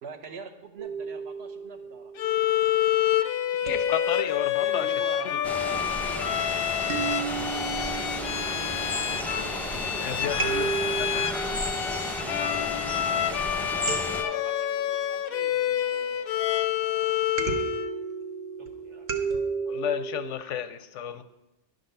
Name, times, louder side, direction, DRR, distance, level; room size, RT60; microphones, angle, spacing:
voice 1, 0.0-2.1 5.5-6.9 9.7-10.6 11.1-11.2 11.8-12.6, right 5 dB, 65° right, 5 dB, 1.1 m, -47 dB
sound 1, 0.8-2.8 3.7-5.2 6.9-9.8 10.4-13.0 13.9-16.1 17.4-20.3, right 4 dB, 45° right, 0.8 m, -34 dB
Bowed string instrument, 2.2-17.9, left 10 dB, 65° left, 0.7 m, -28 dB
voice 2, 3.6-4.9 5.2-5.4 9.9-11.2 19.7-21.2, left 9 dB, 90° left, 11 dB, 1.0 m, -32 dB
voice 3, 4.6-6.2 7.8-9.1 13.5-16.3 18.6-19.1, right 2 dB, 80° right, 1 dB, 1.7 m, -45 dB
sound 2, 5.4-14.2, left 1 dB, ahead, 0.5 m, -33 dB
11.0 x 3.9 x 6.5 m, 0.95 s
omnidirectional pair, 1.2 m